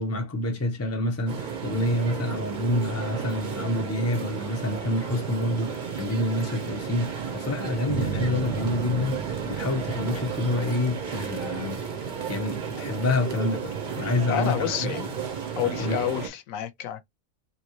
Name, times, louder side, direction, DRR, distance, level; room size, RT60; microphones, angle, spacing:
voice 1, 0.0-15.0 15.8-16.0, left 2 dB, 20° left, 0.5 m, -28 dB
sound 1, 1.3-16.3, right 6 dB, 40° right, 0.8 m, -33 dB
sound 2, 7.9-11.9, right 7 dB, 60° right, 1.0 m, -36 dB
voice 2, 14.3-15.1 15.6-17.0, left 10 dB, 80° left, 1.0 m, -29 dB
3.1 x 2.6 x 2.9 m
omnidirectional pair, 1.4 m